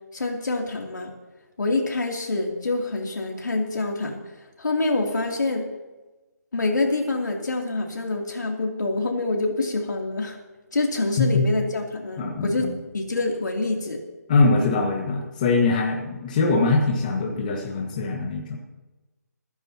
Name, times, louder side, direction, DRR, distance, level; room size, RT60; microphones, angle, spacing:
voice 1, 0.1-1.1 1.6-4.2 4.6-5.6 6.5-10.4 10.7-12.7 12.9-14.0, left 2 dB, 85° left, 1 dB, 3.1 m, -26 dB
voice 2, 12.2-12.7 14.3-18.6, left 3 dB, 25° left, 0 dB, 1.8 m, -22 dB
26.5 x 10.0 x 3.0 m, 1.1 s
hypercardioid pair, 170°, 10 cm